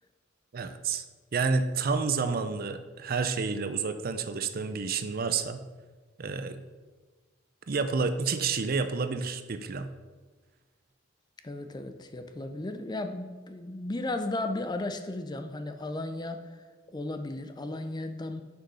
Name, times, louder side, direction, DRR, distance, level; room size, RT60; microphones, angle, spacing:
voice 1, 0.5-1.0 1.3-5.6 6.2-6.6 7.7-9.9, right 4 dB, 45° right, 10 dB, 0.5 m, -29 dB
voice 2, 11.4-16.6 16.9-18.4, left 2 dB, 20° left, 8 dB, 0.5 m, -35 dB
6.5 x 6.2 x 5.5 m, 1.3 s
head